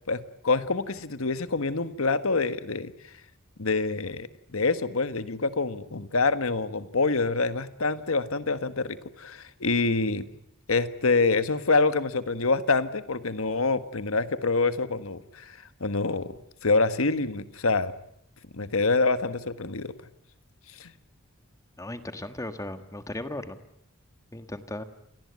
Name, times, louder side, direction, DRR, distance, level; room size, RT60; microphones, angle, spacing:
voice 1, 0.1-2.9 3.6-10.2 10.7-16.4 16.6-17.9 18.5-19.9 20.8-20.9, left 3 dB, 75° left, 12 dB, 1.5 m, -26 dB
voice 2, 21.8-23.6 24.3-24.8, left 1 dB, 15° left, 9 dB, 1.5 m, -36 dB
28.0 x 18.5 x 9.4 m, 0.74 s
head